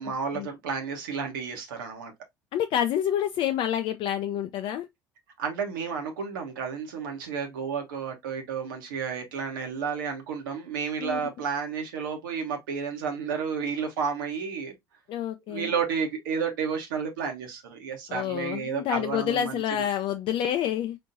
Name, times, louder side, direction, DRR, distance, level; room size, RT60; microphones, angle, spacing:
voice 1, 0.0-2.1 5.4-14.8 15.5-19.8, right 6 dB, 75° right, 1.1 m, -31 dB
voice 2, 2.5-4.9 11.0-11.2 15.1-15.7 18.1-21.0, left 10 dB, 50° left, 0.5 m, -28 dB
4.2 x 3.1 x 2.6 m
figure-of-eight pair, 60°, 11 cm